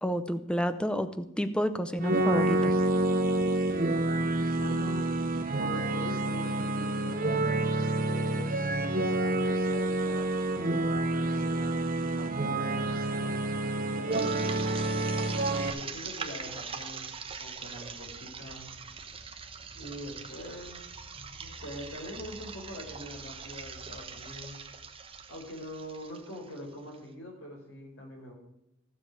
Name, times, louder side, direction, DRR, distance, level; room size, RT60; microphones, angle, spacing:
voice 1, 0.0-2.7, equal, 5° left, 10 dB, 0.7 m, -30 dB
sound 1, 2.0-15.7, right 2 dB, 45° right, 1.0 m, -28 dB
voice 2, 4.6-8.5 9.1-15.1 15.7-17.1 17.4-18.7 19.7-20.9 21.1-24.6 25.3-28.4, left 1 dB, 75° left, 0 dB, 4.7 m, -44 dB
sound 2, 14.1-26.9, right 5 dB, 25° right, 1.1 m, -42 dB
15.0 x 6.9 x 4.8 m, 0.85 s
head